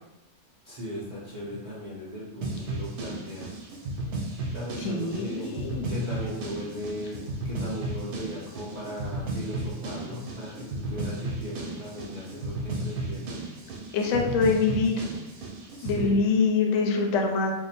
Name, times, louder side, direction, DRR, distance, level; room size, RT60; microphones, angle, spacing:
voice 1, 0.6-3.6 4.5-5.6 5.9-13.3 14.1-14.3 15.8-16.2, left 1 dB, 60° right, -8 dB, 0.4 m, -37 dB
sound 1, 2.4-16.1, right 2 dB, 80° right, 1.0 m, -34 dB
voice 2, 4.8-5.8 13.9-15.1 15.8-17.5, left 4 dB, 65° left, 1 dB, 0.8 m, -24 dB
2.8 x 2.0 x 4.0 m, 0.98 s
omnidirectional pair, 1.6 m